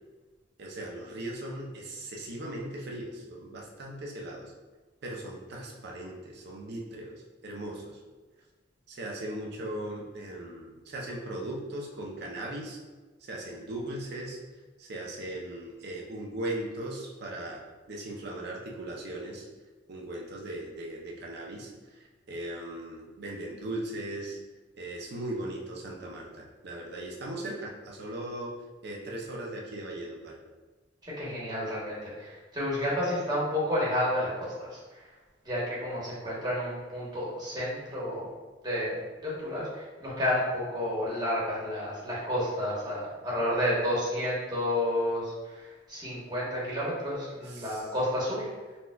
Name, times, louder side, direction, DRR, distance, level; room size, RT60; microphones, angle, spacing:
voice 1, 0.6-4.5 5.0-8.0 8.9-12.8 13.2-14.4 14.8-19.5 19.9-24.4 24.8-28.6 28.8-30.4 47.4-47.9, right 1 dB, 60° right, -1 dB, 0.5 m, -38 dB
voice 2, 31.0-34.8 35.4-38.3 38.6-48.5, left 1 dB, 25° right, -7 dB, 1.0 m, -31 dB
4.2 x 2.2 x 2.2 m, 1.3 s
head